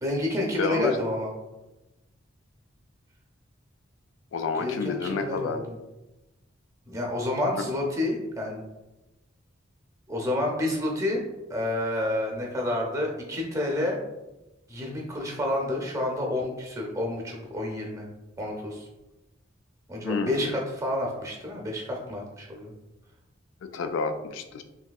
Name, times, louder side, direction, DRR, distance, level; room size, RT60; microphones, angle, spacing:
voice 1, 0.0-1.3 4.6-5.8 6.9-8.6 10.1-11.2 11.5-14.0 14.7-18.1 18.4-18.9 19.9-22.7, left 1 dB, 15° right, 0 dB, 0.5 m, -29 dB
voice 2, 0.6-0.9 4.3-5.6 20.0-20.5 23.7-24.6, left 4 dB, 70° left, 8 dB, 0.3 m, -29 dB
3.1 x 2.6 x 2.3 m, 0.99 s
head